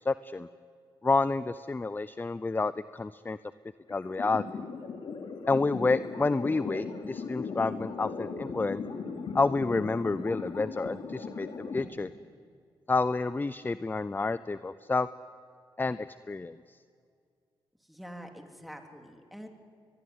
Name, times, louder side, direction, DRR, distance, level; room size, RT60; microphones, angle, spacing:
voice 1, 0.0-0.5 1.0-3.4 3.9-4.6 5.5-8.8 9.3-12.1 12.9-15.1 15.8-16.6, left 3 dB, 20° left, 15 dB, 0.6 m, -29 dB
sound 1, 3.9-11.8, left 5 dB, 65° left, 2.8 m, -38 dB
voice 2, 17.9-19.5, equal, ahead, 4 dB, 3.3 m, -45 dB
22.5 x 22.0 x 9.7 m, 2.2 s
cardioid pair, 75°, 9 cm